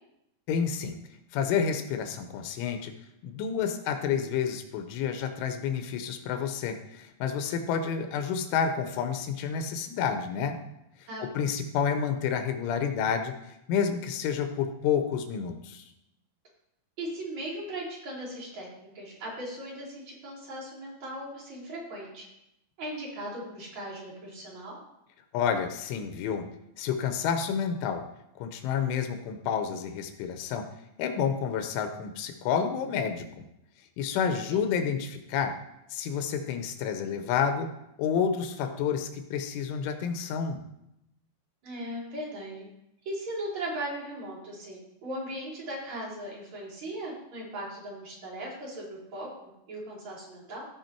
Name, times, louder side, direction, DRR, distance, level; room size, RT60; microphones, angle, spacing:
voice 1, 0.5-1.0 1.3-2.9 3.2-10.6 11.3-13.3 13.7-15.8 25.3-26.5 26.8-28.0 28.4-30.7 31.0-33.5 34.0-35.5 35.9-37.7 38.0-40.6, left 7 dB, 85° left, 7 dB, 3.4 m, -29 dB
voice 2, 11.1-11.4 17.0-22.3 22.8-24.8 34.3-34.7 41.6-42.7 43.0-49.3 49.7-50.6, right 1 dB, 40° right, -5 dB, 4.8 m, -38 dB
16.0 x 5.5 x 4.5 m, 0.84 s
omnidirectional pair, 5.4 m